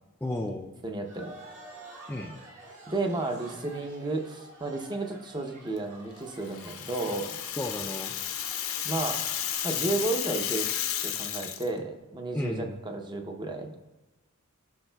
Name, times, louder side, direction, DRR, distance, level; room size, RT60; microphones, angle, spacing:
voice 1, 0.2-0.7 2.1-2.3 7.5-8.2 12.3-12.8, left 1 dB, 10° left, 0 dB, 0.3 m, -33 dB
voice 2, 0.8-1.3 2.9-7.3 8.8-9.2 9.6-10.7 11.0-13.8, right 2 dB, 20° right, 4 dB, 0.7 m, -32 dB
sound 1, 1.0-9.8, right 1 dB, 55° right, 2.0 m, -49 dB
Rattle (instrument), 6.4-11.7, left 10 dB, 70° left, 0.6 m, -32 dB
13.0 x 4.7 x 2.3 m, 1.1 s
head